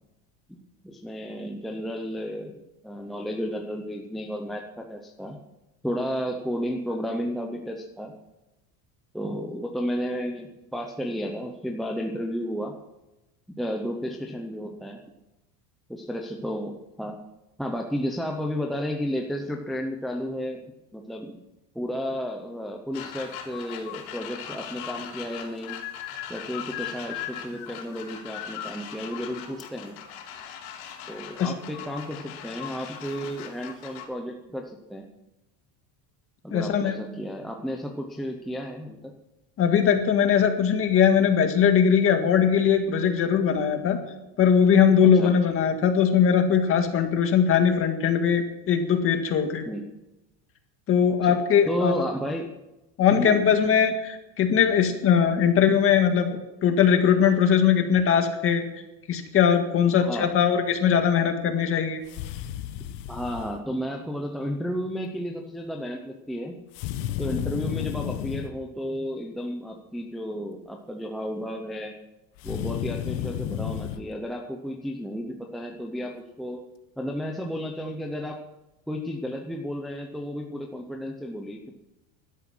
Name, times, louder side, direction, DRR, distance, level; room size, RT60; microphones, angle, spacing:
voice 1, 0.8-5.4 5.8-8.1 9.1-12.7 13.6-15.0 15.9-17.2 17.6-20.6 20.9-21.4 21.7-25.8 26.3-30.0 31.1-35.1 36.4-39.1 45.1-45.3 49.6-49.9 51.2-51.3 51.7-52.5 53.1-53.5 60.0-60.3 63.1-66.5 67.2-71.9 72.4-76.6 77.0-78.4 78.9-81.7, equal, ahead, 1 dB, 0.6 m, -32 dB
sound 1, 22.9-34.1, left 9 dB, 80° left, 3.6 m, -39 dB
voice 2, 36.5-37.0 39.6-44.0 44.4-49.6 50.9-51.9 53.0-56.3 56.6-58.6 59.1-62.0, left 7 dB, 30° left, 6 dB, 1.8 m, -20 dB
sound 2, 62.1-63.6 66.7-68.5 72.4-74.0, left 11 dB, 60° left, 1.1 m, -32 dB
17.0 x 12.0 x 6.1 m, 0.98 s
cardioid pair, 180°, 42 cm